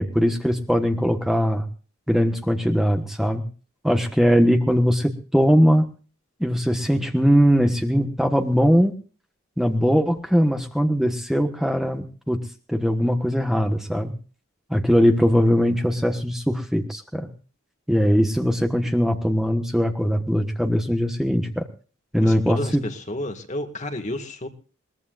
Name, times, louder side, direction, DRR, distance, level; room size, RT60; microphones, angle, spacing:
voice 1, 0.0-1.6 2.1-3.4 3.8-5.9 6.4-8.9 9.6-14.1 14.7-17.3 17.9-21.7 22.1-22.8, equal, ahead, 4 dB, 1.4 m, -20 dB
voice 2, 22.2-24.5, left 1 dB, 35° left, 6 dB, 2.0 m, -31 dB
22.0 x 21.0 x 2.6 m, 0.38 s
head